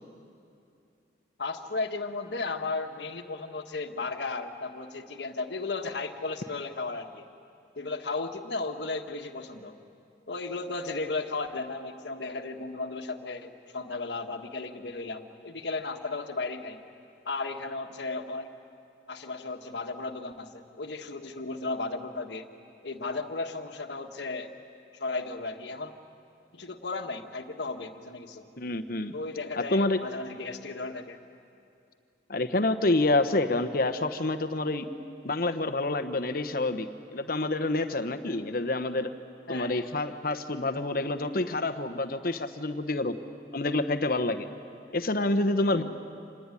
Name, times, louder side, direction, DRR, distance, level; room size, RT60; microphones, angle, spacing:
voice 1, 1.4-7.3 7.7-9.8 10.3-16.8 17.2-18.5 19.1-22.5 22.8-24.5 25.0-26.0 26.5-28.5 29.1-31.2 38.3-38.4 39.5-39.8 45.7-45.8, left 3 dB, 70° left, 5 dB, 1.5 m, -35 dB
voice 2, 28.6-29.1 29.7-30.0 32.3-34.9 35.2-39.1 39.5-43.2 43.5-44.5 44.9-45.8, left 2 dB, 50° left, 8 dB, 1.1 m, -27 dB
26.5 x 19.0 x 10.0 m, 2.6 s
head